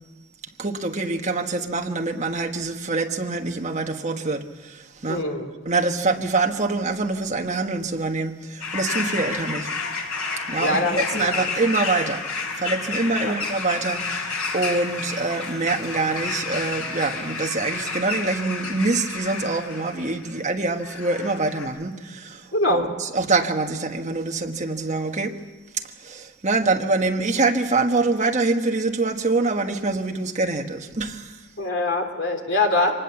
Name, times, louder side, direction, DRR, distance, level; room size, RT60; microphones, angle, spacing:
voice 1, 0.6-5.2 5.6-9.7 10.5-12.2 12.5-14.3 14.5-25.3 26.0-31.3, right 3 dB, 35° right, 3 dB, 1.4 m, -25 dB
voice 2, 5.1-5.5 10.6-11.4 13.2-13.3 22.5-22.8 31.6-32.9, left 2 dB, 55° left, 4 dB, 3.0 m, -23 dB
sound 1, 8.6-20.4 20.8-21.7, left 4 dB, 85° left, 5.0 m, -30 dB
25.0 x 19.5 x 7.1 m, 1.3 s
head